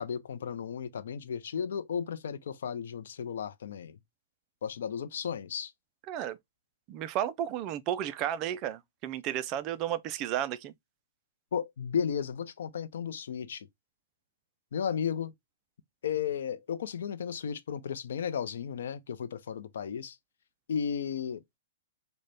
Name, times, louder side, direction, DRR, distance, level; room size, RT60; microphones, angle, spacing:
voice 1, 0.0-4.0 4.6-5.7 11.5-13.7 14.7-15.3 16.0-20.2 20.7-21.4, left 7 dB, 70° left, 0.5 m, -34 dB
voice 2, 6.1-6.4 6.9-10.7, right 11 dB, 25° right, 0.3 m, -33 dB
3.9 x 2.1 x 3.3 m
hypercardioid pair, 165°, 0 cm